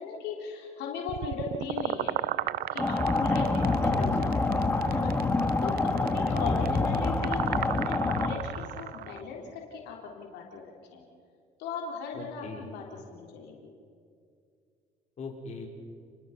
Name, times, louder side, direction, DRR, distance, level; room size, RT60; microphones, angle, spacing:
voice 1, 0.0-2.2 2.7-4.1 4.5-11.0 11.6-13.7, left 5 dB, 85° left, 0 dB, 3.8 m, -38 dB
sound 1, 1.1-9.2, right 13 dB, 65° right, 0.6 m, -35 dB
sound 2, 2.8-8.3, left 2 dB, 10° left, 2.0 m, -26 dB
voice 2, 4.0-4.3 6.2-7.0 12.1-12.7 15.2-15.7, left 4 dB, 40° left, 0 dB, 5.0 m, -40 dB
30.0 x 21.5 x 5.9 m, 2.3 s
cardioid pair, 110°, 17 cm